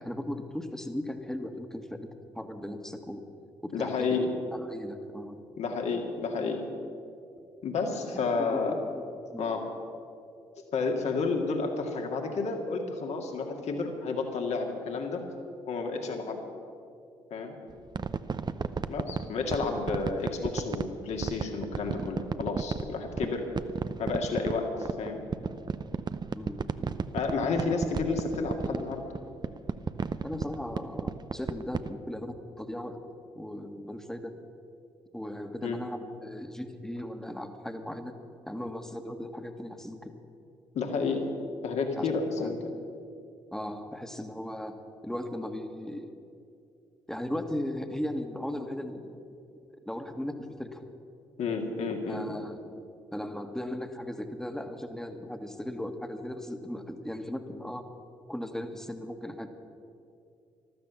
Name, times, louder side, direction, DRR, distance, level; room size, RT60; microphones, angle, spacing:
voice 1, 0.0-2.0 2.3-3.2 3.6-4.2 4.5-5.4 8.4-9.0 9.3-9.5 26.3-27.0 30.2-33.0 33.3-34.3 35.1-38.1 38.5-40.1 42.0-42.1 42.4-42.5 43.5-46.1 47.1-49.2 49.7-50.3 50.6-50.8 52.1-52.6 53.1-57.8 58.3-59.5, left 1 dB, 5° left, 6 dB, 1.6 m, -37 dB
voice 2, 3.7-4.3 5.6-6.6 7.6-8.7 9.4-9.6 10.7-15.2 15.7-16.4 17.3-17.5 18.9-23.4 24.0-25.2 27.1-29.0 35.6-35.8 40.7-41.3 41.6-42.6 51.4-52.4, left 4 dB, 60° left, 2 dB, 2.2 m, -31 dB
sound 1, 17.7-31.9, right 5 dB, 35° right, 0.6 m, -34 dB
13.5 x 12.5 x 6.9 m, 2.5 s
hypercardioid pair, 45°, 13 cm